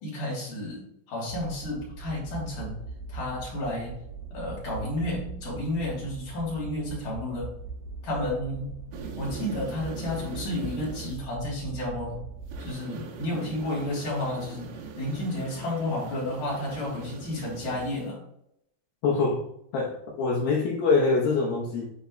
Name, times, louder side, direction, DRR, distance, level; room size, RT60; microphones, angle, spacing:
voice 1, 0.0-2.8 3.1-4.0 4.3-7.5 8.0-8.8 9.2-12.2 12.6-18.2, left 1 dB, 45° left, -5 dB, 3.7 m, -32 dB
sound 1, 1.3-12.7, right 4 dB, 60° right, 1.6 m, -41 dB
sound 2, 8.9-11.2 12.5-18.1, right 5 dB, 75° right, 2.6 m, -41 dB
voice 2, 19.0-19.4 19.7-21.9, left 4 dB, 80° left, -4 dB, 2.1 m, -24 dB
9.2 x 5.2 x 2.2 m, 0.76 s
omnidirectional pair, 5.7 m